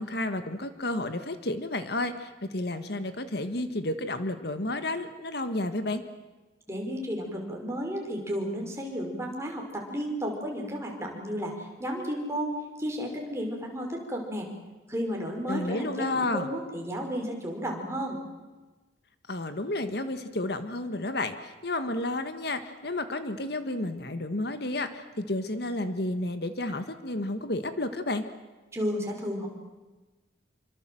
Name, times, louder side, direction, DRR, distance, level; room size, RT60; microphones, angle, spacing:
voice 1, 0.0-6.0 15.5-16.5 19.3-28.2, left 2 dB, 60° left, 9 dB, 1.7 m, -31 dB
voice 2, 6.7-12.5 12.8-14.5 14.9-18.2 28.7-29.5, equal, 15° right, 1 dB, 5.4 m, -33 dB
28.0 x 24.5 x 7.8 m, 1.2 s
head